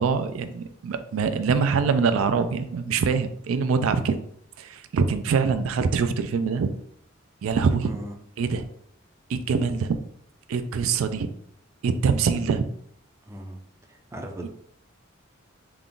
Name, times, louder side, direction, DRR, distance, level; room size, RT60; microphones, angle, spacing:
voice 1, 0.0-4.2 4.6-6.7 7.4-7.9 8.4-8.6 9.3-10.0 10.5-11.3 11.8-12.6 14.4-14.5, right 5 dB, 80° right, 10 dB, 0.3 m, -24 dB
voice 2, 7.8-8.1 13.3-13.6 13.9-14.5, equal, 15° right, 2 dB, 0.4 m, -38 dB
3.5 x 2.4 x 3.8 m, 0.66 s
head